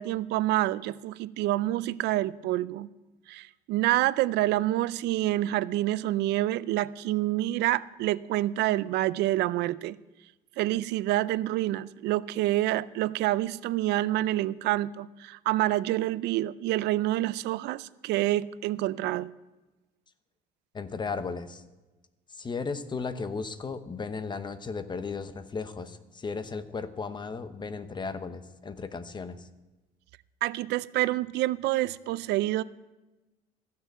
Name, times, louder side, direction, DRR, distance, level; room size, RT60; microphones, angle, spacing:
voice 1, 0.0-2.9 3.3-10.0 10.6-19.3 30.4-32.6, right 15 dB, 80° right, 0.4 m, -27 dB
voice 2, 20.7-21.6 22.3-29.5, left 4 dB, 25° left, 0.9 m, -35 dB
15.0 x 6.7 x 7.9 m
cardioid pair, 110°, 17 cm